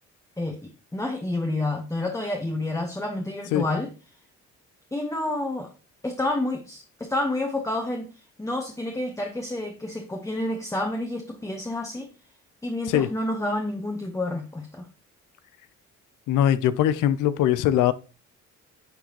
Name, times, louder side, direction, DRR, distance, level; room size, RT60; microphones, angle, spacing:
voice 1, 0.4-3.9 4.9-5.7 6.0-12.1 12.6-14.9, left 2 dB, 10° left, 1.0 m, -29 dB
voice 2, 16.3-17.9, left 11 dB, 90° left, 0.6 m, -21 dB
11.5 x 3.8 x 3.0 m
cardioid pair, 90°, 30 cm